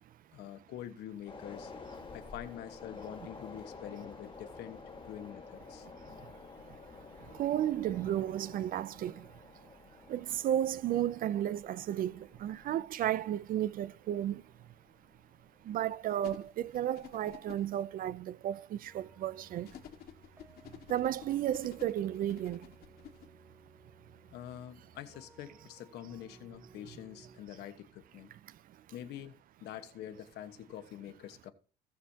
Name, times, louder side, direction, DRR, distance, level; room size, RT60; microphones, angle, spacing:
voice 1, 0.3-1.7 2.1-5.9 24.3-28.3 28.9-31.5, left 11 dB, 80° left, 1.3 m, -46 dB
sound 1, 1.3-15.8 16.2-16.3, left 4 dB, 30° left, 1.7 m, -51 dB
voice 2, 5.8-6.3 6.6-9.5 10.1-14.7 15.6-19.8 20.9-22.8 28.5-28.8, right 11 dB, 55° right, 0.5 m, -34 dB
sound 2, 16.2-17.8 19.7-23.3, left 9 dB, 65° left, 1.8 m, -51 dB
sound 3, 18.9-27.4, right 2 dB, 15° right, 1.1 m, -60 dB
17.5 x 6.3 x 2.9 m
cardioid pair, 110°, 17 cm